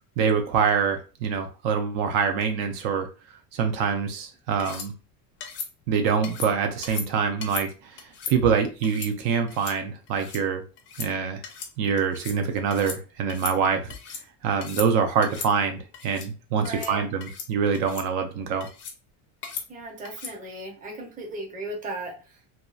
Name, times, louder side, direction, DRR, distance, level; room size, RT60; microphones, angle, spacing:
voice 1, 0.2-3.1 3.5-4.9 5.9-8.0 8.3-10.6 11.0-11.4 11.8-13.9 14.4-18.7, right 6 dB, 60° right, 6 dB, 0.5 m, -25 dB
sound 1, 4.6-4.9 5.4-5.7 6.2-6.5 6.8-7.1 7.4-7.7 8.0-8.3 8.8-9.1 9.5-9.8 10.1-10.4 10.8-11.1 11.4-11.7 12.0-12.4 12.7-13.0 13.3-14.2 14.6-14.9 15.2-15.5 15.9-16.3 16.6-16.9 17.2-17.5 17.7-18.1 18.6-19.0 19.4-19.7 20.0-20.3, left 6 dB, 25° left, 0.4 m, -37 dB
voice 2, 16.6-17.1 19.7-22.4, right 2 dB, 15° right, 1 dB, 0.6 m, -36 dB
2.7 x 2.3 x 2.3 m, 0.33 s
supercardioid pair, 135°, 49 cm